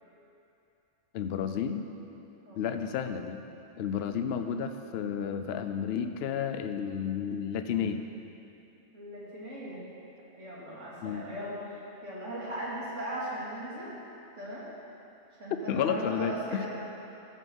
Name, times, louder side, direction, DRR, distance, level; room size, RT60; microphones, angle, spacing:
voice 1, 1.1-1.9 2.5-3.5 3.8-8.0 11.0-11.3 15.7-16.7, left 7 dB, 65° left, 8 dB, 0.8 m, -32 dB
voice 2, 8.9-9.9 10.4-13.9 14.4-14.7 15.4-16.7, right 1 dB, 80° right, -7 dB, 2.8 m, -38 dB
13.5 x 7.3 x 5.4 m, 2.8 s
omnidirectional pair, 1.2 m